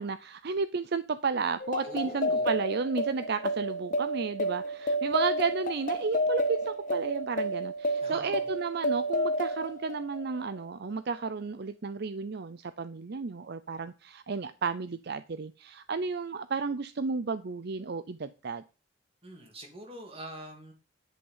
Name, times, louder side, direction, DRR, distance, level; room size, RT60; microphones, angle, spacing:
voice 1, 0.0-18.6, right 4 dB, 55° right, 0.5 m, -32 dB
sound 1, 1.6-10.6, equal, 45° left, 0.7 m, -31 dB
voice 2, 1.8-2.6 8.0-8.4 19.2-20.7, right 1 dB, 30° right, 2.6 m, -44 dB
10.5 x 6.5 x 5.6 m
head